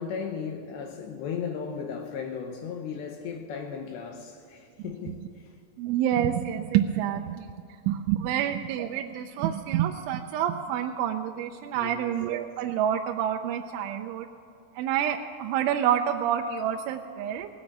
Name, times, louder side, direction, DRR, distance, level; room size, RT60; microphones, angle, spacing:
voice 1, 0.0-5.6 8.4-8.6 11.7-12.2, left 6 dB, 75° left, 3 dB, 2.8 m, -36 dB
voice 2, 5.8-7.5 7.9-14.3 14.8-17.5, right 10 dB, 80° right, 3 dB, 2.9 m, -28 dB
18.5 x 7.9 x 8.5 m, 2.5 s
omnidirectional pair, 5.7 m